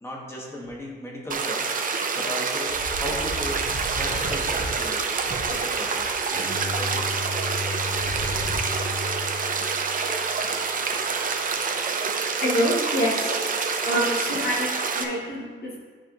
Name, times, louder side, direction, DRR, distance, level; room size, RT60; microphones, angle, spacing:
voice 1, 0.0-1.8 2.1-5.0 5.5-7.2, left 1 dB, 15° left, -2 dB, 1.3 m, -37 dB
sound 1, 1.3-15.0, right 5 dB, 45° right, 0.6 m, -27 dB
sound 2, 2.7-6.3 7.9-8.6, right 1 dB, 70° right, 1.5 m, -36 dB
Bowed string instrument, 6.3-10.5, left 2 dB, 15° right, 1.5 m, -34 dB
voice 2, 12.4-13.4 13.8-15.8, equal, 50° left, -3 dB, 1.1 m, -26 dB
10.5 x 4.4 x 2.5 m, 1.5 s
wide cardioid pair, 140°, 20 cm